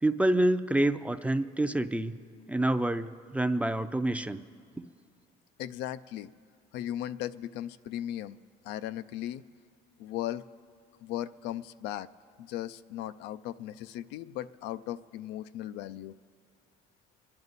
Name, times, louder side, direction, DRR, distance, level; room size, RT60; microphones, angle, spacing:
voice 1, 0.0-2.2 2.5-4.4, right 1 dB, 10° right, 10 dB, 0.4 m, -27 dB
voice 2, 5.6-6.3 6.7-8.4 8.6-9.4 10.0-10.5 11.0-12.1 12.4-16.1, left 12 dB, 90° left, 12 dB, 0.4 m, -37 dB
24.0 x 10.5 x 4.0 m, 2.4 s
cardioid pair, 110°, 17 cm